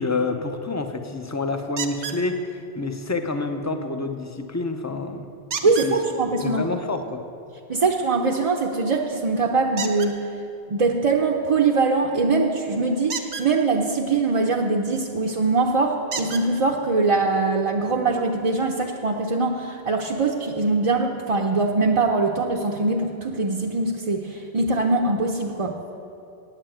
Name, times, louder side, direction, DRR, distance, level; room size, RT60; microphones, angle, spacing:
voice 1, 0.0-5.3 5.6-6.0 6.4-7.2, left 3 dB, 20° left, 6 dB, 0.6 m, -28 dB
sound 1, 1.8-2.2 5.5-5.9 9.8-10.1 13.0-13.5 15.1-15.2 16.1-16.5 17.5-17.6 18.0-18.1, right 6 dB, 75° right, 1.1 m, -31 dB
voice 2, 5.6-6.7 7.7-10.2 10.7-25.7, right 3 dB, 40° right, -1 dB, 0.7 m, -22 dB
9.1 x 8.7 x 9.0 m, 2.9 s
omnidirectional pair, 1.1 m